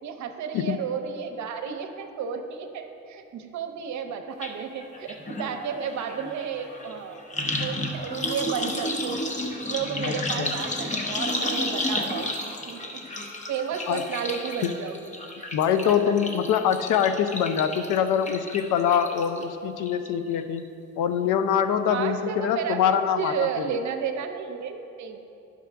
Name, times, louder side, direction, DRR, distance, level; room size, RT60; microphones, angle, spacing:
voice 1, 0.0-7.2 7.6-12.3 12.7-13.0 13.5-15.0 15.4-16.1 21.9-25.3, right 7 dB, 70° right, 6 dB, 0.7 m, -32 dB
sound 1, 4.4-4.5 4.8-19.4 19.8-20.3 20.6-20.7, left 1 dB, 25° left, 0.8 m, -32 dB
voice 2, 10.0-10.5 13.9-14.1 14.6-14.7 15.5-20.7 21.0-23.5, left 8 dB, 85° left, 10 dB, 0.5 m, -24 dB
10.5 x 6.2 x 3.4 m, 2.8 s
cardioid pair, 90°, 30 cm